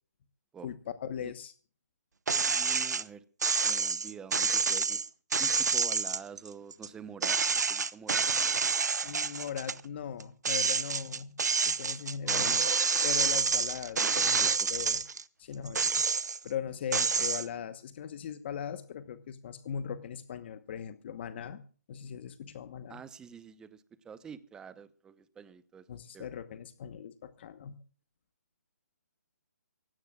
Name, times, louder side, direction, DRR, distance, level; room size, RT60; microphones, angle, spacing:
voice 1, 0.6-1.5 9.0-12.6 13.0-15.0 15.4-16.1 16.4-21.6 21.9-23.0 25.9-27.8, left 8 dB, 40° left, 12 dB, 1.1 m, -39 dB
sound 1, 2.3-3.0 3.4-6.9 7.2-9.8 10.2-15.2 15.7-16.5 16.9-17.5, right 5 dB, 80° right, 1.0 m, -28 dB
voice 2, 2.5-3.2 3.6-5.0 5.4-7.4 7.7-8.2 12.2-12.5 14.0-14.7 22.9-25.9 26.1-26.3, right 7 dB, 10° right, 15 dB, 0.8 m, -47 dB
24.5 x 17.0 x 2.4 m, 0.40 s
hypercardioid pair, 155°, 9 cm